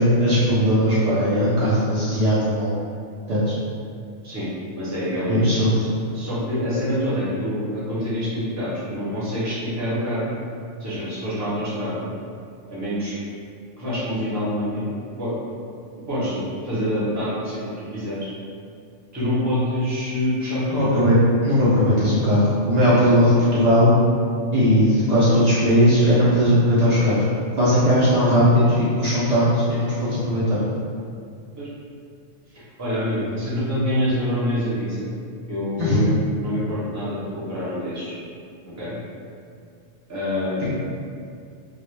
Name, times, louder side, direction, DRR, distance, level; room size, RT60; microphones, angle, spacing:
voice 1, 0.0-2.7 3.3-3.4 5.3-5.8 20.7-21.2 21.4-23.9 24.5-27.2 27.6-30.6 35.8-36.0, equal, 80° right, -10 dB, 0.3 m, -18 dB
voice 2, 4.2-5.4 5.8-10.2 10.8-12.1 12.7-13.2 13.8-14.9 15.2-15.3 16.1-16.4 16.6-18.3 19.1-21.0 31.6-31.7 32.8-35.1 35.5-38.1 38.8-39.0 40.1-40.7, equal, 20° right, -10 dB, 0.5 m, -26 dB
2.3 x 2.1 x 3.0 m, 2.4 s
omnidirectional pair, 1.3 m